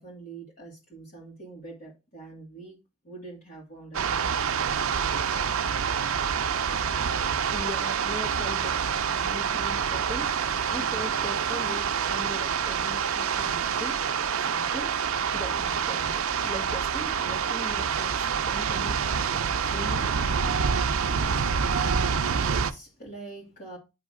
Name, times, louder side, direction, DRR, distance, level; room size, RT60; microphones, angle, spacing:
voice 1, 0.0-2.8 3.0-4.5 21.5-23.8, right 3 dB, 45° left, 2.0 m, -44 dB
sound 1, 3.9-22.7, right 6 dB, 85° right, 0.6 m, -27 dB
voice 2, 7.5-14.0 14.3-14.9 15.3-20.1, left 1 dB, 10° left, 1.2 m, -40 dB
9.1 x 3.1 x 4.9 m
head